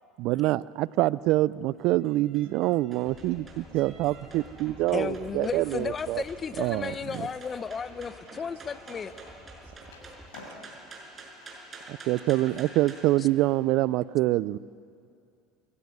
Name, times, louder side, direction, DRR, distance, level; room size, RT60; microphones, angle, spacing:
voice 1, 0.2-6.2 6.6-7.3 11.9-14.6, right 17 dB, 60° right, 20 dB, 0.4 m, -26 dB
sound 1, 1.3-13.0, right 3 dB, 30° right, 5.7 m, -49 dB
sound 2, 3.0-10.3, left 1 dB, ahead, 2.4 m, -50 dB
voice 2, 4.9-9.1 13.2-13.3, left 6 dB, 30° left, 14 dB, 0.9 m, -34 dB
Skateboard, 7.8-13.0, left 3 dB, 80° left, 6.9 m, -54 dB
voice 3, 10.5-11.3 11.6-12.3, right 13 dB, 85° right, 11 dB, 1.3 m, -66 dB
22.5 x 15.5 x 9.6 m, 2.4 s
hypercardioid pair, 90°, 0 cm